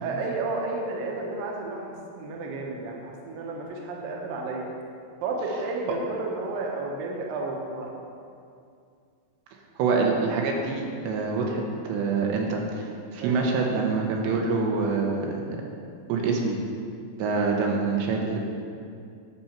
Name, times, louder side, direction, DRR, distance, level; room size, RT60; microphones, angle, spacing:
voice 1, 0.0-4.7 5.2-7.9 13.2-13.3 13.9-14.0, right 3 dB, 70° right, -1 dB, 2.4 m, -32 dB
voice 2, 9.8-12.8 13.1-15.4 16.1-16.5 17.2-18.7, right 4 dB, 85° right, 0 dB, 3.1 m, -25 dB
10.5 x 6.8 x 4.4 m, 2.4 s
omnidirectional pair, 5.0 m